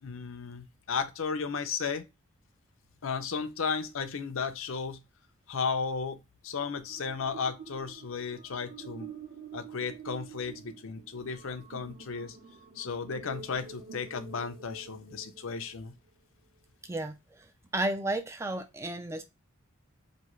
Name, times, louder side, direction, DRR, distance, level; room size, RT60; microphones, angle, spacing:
voice 1, 0.0-2.0 3.0-5.0 5.5-9.1 9.5-12.4 12.8-15.9, left 5 dB, 70° left, 0.6 m, -34 dB
sound 1, 6.6-16.0, right 6 dB, 45° right, 1.0 m, -48 dB
voice 2, 16.8-17.4 17.7-19.2, right 1 dB, 15° right, 0.4 m, -33 dB
5.0 x 2.7 x 3.0 m
head